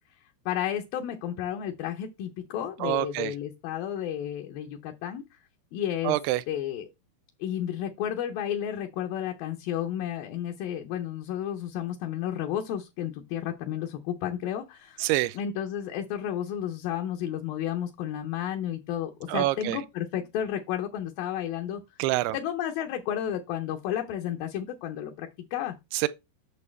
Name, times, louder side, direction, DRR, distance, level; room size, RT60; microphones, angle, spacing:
voice 1, 0.5-5.2 5.7-6.2 6.5-6.9 7.4-15.0 15.3-21.8 22.3-25.8, left 10 dB, 75° left, 2.3 m, -32 dB
voice 2, 2.8-3.3 6.1-6.4 15.0-15.3 19.3-19.8 22.0-22.4 25.9-26.1, right 17 dB, 90° right, 2.6 m, -26 dB
8.5 x 6.6 x 3.3 m
omnidirectional pair, 4.6 m